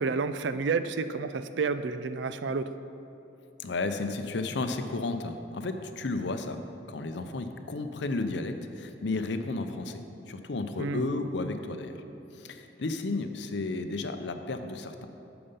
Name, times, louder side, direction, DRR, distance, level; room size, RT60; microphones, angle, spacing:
voice 1, 0.0-2.7 10.8-11.0, right 4 dB, 70° right, 11 dB, 0.4 m, -30 dB
voice 2, 3.6-10.0 10.3-12.0 12.3-15.1, left 3 dB, 65° left, 8 dB, 0.6 m, -33 dB
8.8 x 6.9 x 5.5 m, 2.9 s
head